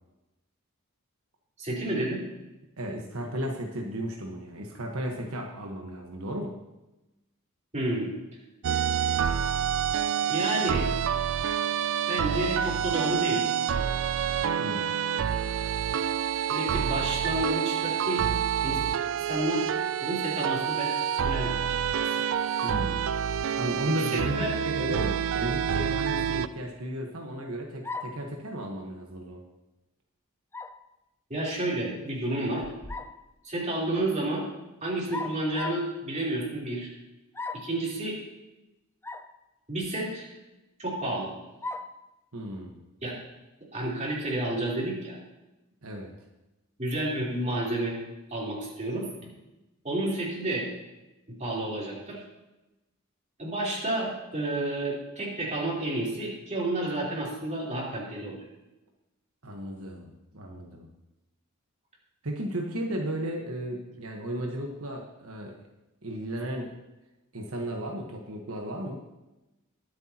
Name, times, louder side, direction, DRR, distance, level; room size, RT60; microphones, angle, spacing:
voice 1, 1.6-2.2 7.7-8.1 10.3-10.9 12.1-13.5 16.5-18.2 18.6-18.8 19.2-19.7 20.0-20.9 21.2-21.7 21.9-22.1 23.9-24.5 31.3-32.6 33.4-34.5 34.8-36.9 37.5-38.2 39.7-40.3 40.8-41.3 43.0-43.2 43.7-45.2 46.8-48.0 48.3-49.1 49.8-50.7 51.4-52.2 53.4-58.4, right 1 dB, 35° right, -5 dB, 3.7 m, -30 dB
voice 2, 2.8-6.6 14.6-14.9 22.6-23.1 23.6-29.4 42.3-42.8 45.8-46.1 59.4-60.9 62.2-65.7 66.0-66.7 67.3-69.0, right 1 dB, 85° right, 1 dB, 1.3 m, -34 dB
sound 1, 8.6-26.5, right 8 dB, 65° right, 0.4 m, -28 dB
sound 2, 27.8-28.3 30.5-30.8 32.6-33.2 35.1-35.9 37.3-37.8 39.0-39.3 39.8-39.9 41.6-42.0, left 3 dB, 10° left, 0.4 m, -37 dB
21.5 x 8.1 x 2.9 m, 1.0 s
head